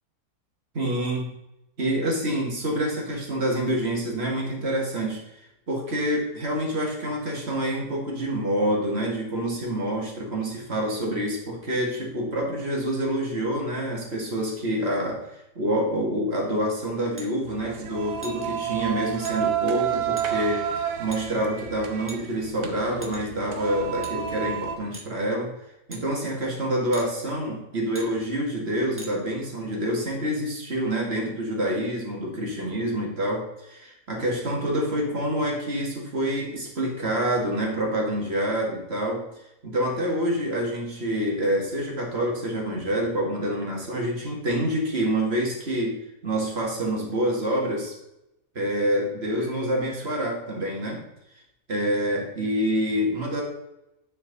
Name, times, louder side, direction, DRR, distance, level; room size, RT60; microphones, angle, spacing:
voice 1, 0.7-1.3 1.8-20.7 21.0-25.5 25.9-39.3 39.6-46.0 46.2-48.0 48.6-51.0 51.7-53.4, right 1 dB, 45° right, -1 dB, 2.0 m, -27 dB
sound 1, 17.2-17.3 18.2-18.4 19.2-19.4 20.2-20.3 21.1-21.2 22.1-22.5 23.0-23.4 24.0-24.1 24.9-25.1 25.9-26.0 26.9-27.1 27.9-28.1 29.0-29.1, right 1 dB, 10° right, 1.1 m, -41 dB
sound 2, 17.4-24.8, right 9 dB, 70° right, 1.2 m, -30 dB
9.6 x 4.6 x 4.0 m, 0.88 s
omnidirectional pair, 1.5 m